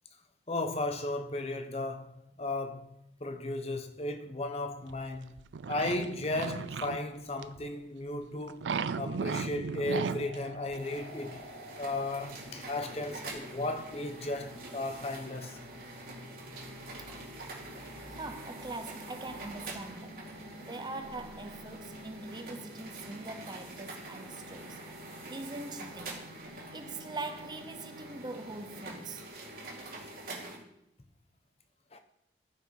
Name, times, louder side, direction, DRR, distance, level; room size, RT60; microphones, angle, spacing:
voice 1, 0.5-5.4 5.7-11.4 11.8-15.6 31.9-32.0, left 2 dB, 35° left, 0.8 m, -35 dB
sound 1, 4.9-7.0 7.4-7.6 8.5-10.4 10.7-10.8, right 5 dB, 85° right, 0.4 m, -35 dB
sound 2, 9.8-29.3, left 1 dB, 60° left, 1.0 m, -52 dB
sound 3, 10.8-30.6, right 2 dB, 55° right, 2.5 m, -46 dB
voice 2, 18.0-20.2 20.5-24.8 25.3-26.3 26.7-29.2, right 2 dB, 25° right, 0.6 m, -42 dB
13.5 x 5.8 x 4.7 m
head